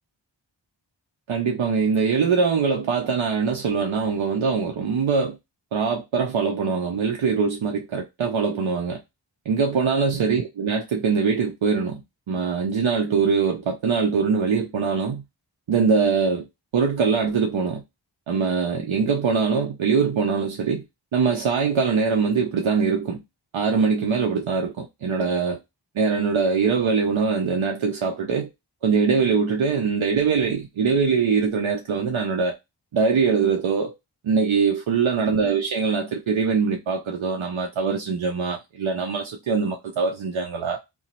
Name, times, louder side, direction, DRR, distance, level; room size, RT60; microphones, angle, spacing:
voice 1, 1.3-5.4 5.7-9.0 9.5-12.0 12.3-15.2 15.7-16.5 16.7-17.8 18.3-20.8 21.1-23.2 23.5-25.6 26.0-28.5 28.8-32.6 32.9-33.9 34.2-40.8, right 5 dB, 85° right, 0.5 m, -22 dB
2.9 x 2.0 x 4.0 m
wide cardioid pair, 45°, 46 cm